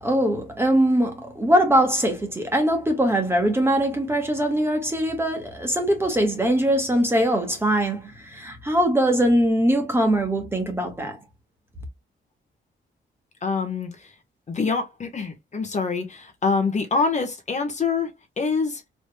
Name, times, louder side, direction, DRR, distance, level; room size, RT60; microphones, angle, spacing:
voice 1, 0.0-11.2, right 1 dB, 10° right, 1.5 m, -22 dB
voice 2, 13.4-13.9 14.5-18.1 18.4-18.8, left 4 dB, 35° left, 1.3 m, -25 dB
5.0 x 3.4 x 2.2 m
wide cardioid pair, 155°, 20 cm